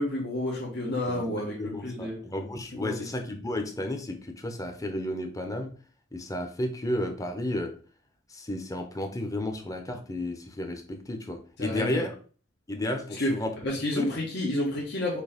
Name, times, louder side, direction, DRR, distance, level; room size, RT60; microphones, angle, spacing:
voice 1, 0.0-2.1 2.7-3.1 11.6-12.0 13.2-13.3 13.6-15.2, left 1 dB, 60° left, -5 dB, 1.6 m, -30 dB
voice 2, 1.1-5.7 6.1-7.7 8.3-12.1 12.7-13.5 14.0-14.1, left 1 dB, 15° left, 4 dB, 1.0 m, -32 dB
6.7 x 3.0 x 5.1 m, 0.40 s
head